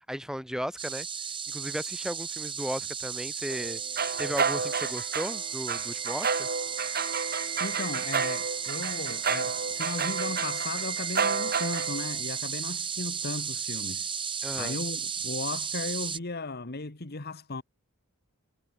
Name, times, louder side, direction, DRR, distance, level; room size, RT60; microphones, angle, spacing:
voice 1, 0.1-1.1 1.5-3.8 4.2-6.5 14.4-14.8, equal, 5° right, 5.6 m, -35 dB
sound 1, 0.8-16.2, right 6 dB, 25° right, 5.4 m, -34 dB
sound 2, 3.5-12.2, right 5 dB, 45° right, 3.9 m, -31 dB
sound 3, 3.5-12.8 13.1-13.2, right 9 dB, 90° right, 6.1 m, -44 dB
voice 2, 7.6-14.1 14.5-17.6, left 3 dB, 45° left, 1.5 m, -36 dB
head